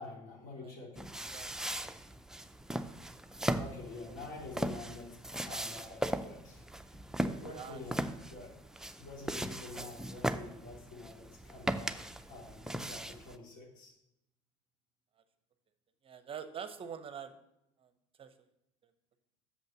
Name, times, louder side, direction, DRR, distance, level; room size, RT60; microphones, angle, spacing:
voice 1, 0.0-1.3 3.5-6.6 6.9-8.5 9.0-13.9, left 3 dB, 60° left, -2 dB, 3.0 m, -48 dB
sound 1, 1.0-13.4, right 1 dB, 5° right, 0.5 m, -38 dB
voice 2, 1.3-1.8 7.5-7.8 16.0-17.3 17.8-17.9 18.2-18.3 18.8-18.9, right 7 dB, 35° right, 10 dB, 0.7 m, -45 dB
6.7 x 5.3 x 7.2 m, 0.86 s
hypercardioid pair, 70°, 16 cm